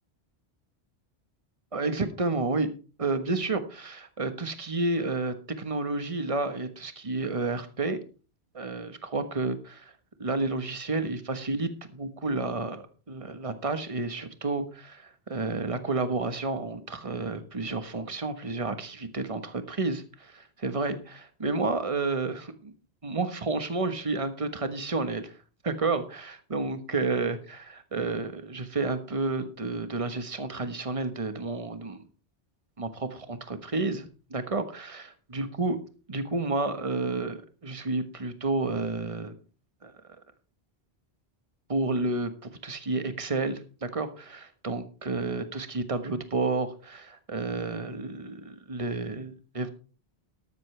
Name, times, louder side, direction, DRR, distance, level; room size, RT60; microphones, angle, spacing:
voice 1, 1.7-2.7 3.0-8.0 8.5-9.9 10.2-22.7 23.0-25.3 25.6-32.0 32.8-35.8 36.1-39.4 39.8-39.9 41.7-49.7, right 3 dB, 30° right, 9 dB, 1.3 m, -31 dB
13.0 x 13.0 x 3.3 m, 0.36 s
omnidirectional pair, 1.1 m